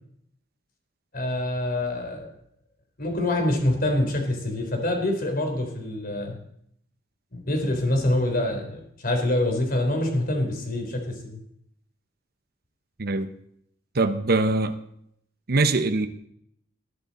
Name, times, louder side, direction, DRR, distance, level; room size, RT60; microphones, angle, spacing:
voice 1, 1.1-2.3 3.0-6.4 7.3-11.4, left 1 dB, 50° left, 3.6 m, -25 dB
voice 2, 13.0-13.3 13.9-14.8 15.5-16.1, right 3 dB, 55° right, 0.8 m, -22 dB
20.0 x 11.0 x 4.2 m
head